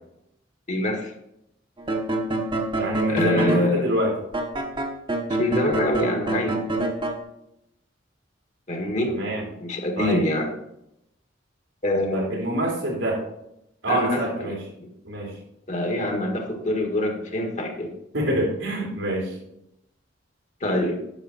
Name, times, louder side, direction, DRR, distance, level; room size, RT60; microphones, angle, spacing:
voice 1, 0.7-1.1 3.1-3.9 5.3-6.6 8.7-9.1 9.6-10.5 11.8-12.3 13.9-14.9 15.7-17.9 20.6-21.0, left 1 dB, 40° left, 3 dB, 1.7 m, -25 dB
sound 1, 1.8-3.7 4.3-7.2, right 2 dB, 25° right, 1.3 m, -26 dB
voice 2, 2.8-4.2 9.1-9.4 10.0-10.2 12.1-13.2 13.8-14.6 15.0-15.4 18.1-19.4, right 1 dB, 90° right, -3 dB, 3.8 m, -26 dB
9.9 x 6.7 x 4.2 m, 0.81 s
head